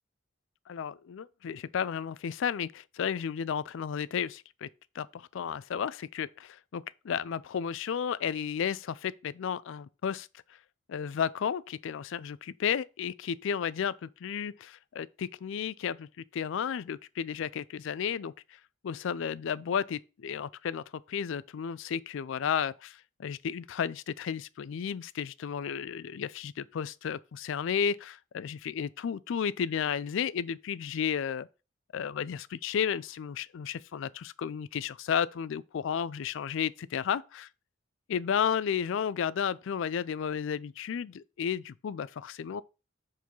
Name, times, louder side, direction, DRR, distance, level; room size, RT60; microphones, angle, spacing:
voice 1, 0.7-4.7 4.9-10.3 10.9-18.3 18.8-31.5 31.9-37.5 38.1-42.6, left 7 dB, 65° left, 0.4 m, -33 dB
4.6 x 4.6 x 5.4 m
head